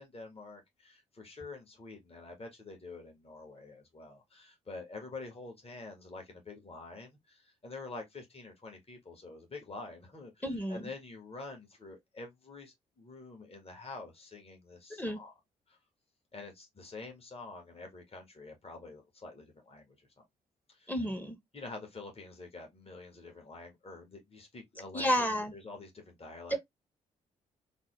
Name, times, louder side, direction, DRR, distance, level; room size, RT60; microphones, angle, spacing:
voice 1, 0.0-15.3 15.7-15.8 16.3-20.2 20.7-20.9 21.5-26.6, left 3 dB, 35° left, 1.6 m, -47 dB
voice 2, 10.4-10.9 14.9-15.2 20.9-21.4 24.9-25.5 26.5-26.6, equal, 10° left, 1.0 m, -31 dB
3.8 x 2.1 x 3.1 m
hypercardioid pair, 45°, 18 cm